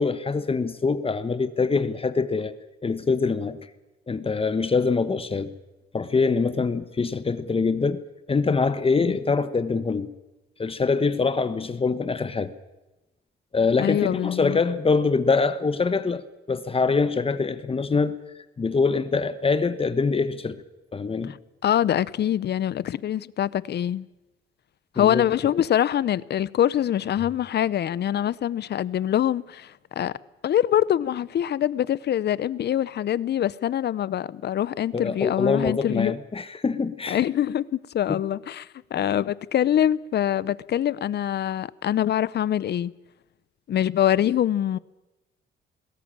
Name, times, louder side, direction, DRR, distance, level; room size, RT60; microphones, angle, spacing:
voice 1, 0.0-2.6 2.8-3.6 4.1-5.5 5.9-8.0 8.3-10.1 10.6-12.5 13.5-18.2 18.6-20.6 20.9-21.3 25.0-25.3 34.9-37.2 38.1-38.2, left 4 dB, 30° left, 1.1 m, -24 dB
voice 2, 13.8-14.6 21.3-21.4 21.6-24.1 25.0-30.1 30.4-36.2 37.1-42.9 43.7-44.8, left 10 dB, 55° left, 0.7 m, -24 dB
21.0 x 17.0 x 8.8 m
cardioid pair, 90°, 20 cm